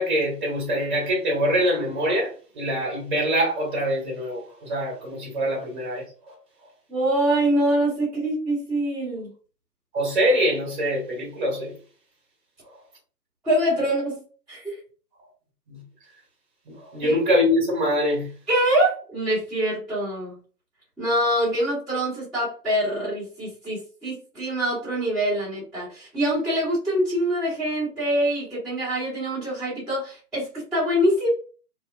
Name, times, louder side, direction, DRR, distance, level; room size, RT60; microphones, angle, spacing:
voice 1, 0.0-6.3 9.9-11.7 12.6-12.8 15.7-15.8 16.7-18.3, equal, 30° right, 0.8 m, -24 dB
voice 2, 6.9-9.3 13.4-14.2 14.5-14.8 17.0-17.2 18.5-20.4 21.0-31.3, right 1 dB, ahead, 0.8 m, -24 dB
2.7 x 2.0 x 2.3 m
figure-of-eight pair, 135°, 50 cm